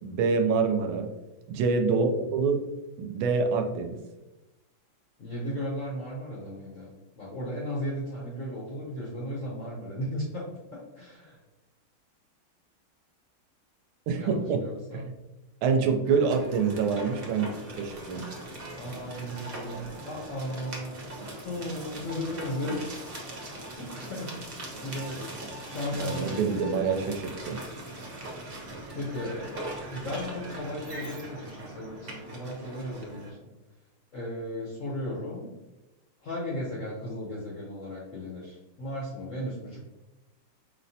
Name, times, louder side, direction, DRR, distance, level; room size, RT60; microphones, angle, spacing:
voice 1, 0.0-1.1 1.5-2.6 3.0-4.0 14.1-14.6 14.9-15.1 15.6-17.5 17.8-18.2 25.9-27.6, right 5 dB, 80° right, 4 dB, 1.3 m, -26 dB
voice 2, 5.2-6.9 7.2-11.4 14.2-15.0 18.8-21.1 21.4-22.9 23.8-25.3 25.6-26.9 28.9-33.5 34.1-35.5 36.2-39.8, left 1 dB, 60° left, -4 dB, 0.8 m, -36 dB
sound 1, 16.0-33.3, right 1 dB, 45° right, 0.7 m, -41 dB
4.6 x 3.2 x 2.7 m, 1.0 s
omnidirectional pair, 2.3 m